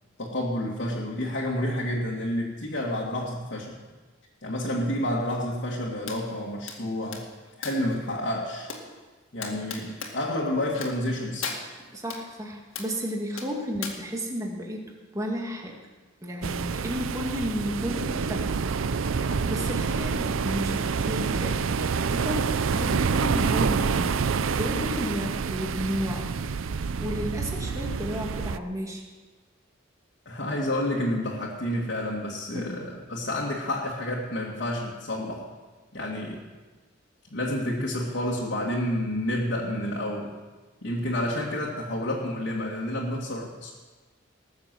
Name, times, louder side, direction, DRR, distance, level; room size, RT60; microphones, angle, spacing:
voice 1, 0.2-3.8 4.4-7.2 7.6-8.7 9.3-11.5 30.3-35.4 35.9-36.4 37.3-40.3 40.8-43.7, left 1 dB, 55° left, -4 dB, 2.1 m, -29 dB
sound 1, 6.1-6.2 6.7-7.9 8.7-8.8 9.4-10.1 10.7-11.1 11.4-12.2 12.7-12.9 13.4-13.9, left 5 dB, 80° left, 2.2 m, -37 dB
voice 2, 11.9-15.8 16.2-18.5 19.3-29.0 32.5-32.7, equal, 15° right, 0 dB, 2.1 m, -33 dB
sound 2, 16.4-28.6, right 5 dB, 85° right, 0.5 m, -27 dB
19.0 x 7.2 x 7.7 m, 1.3 s
head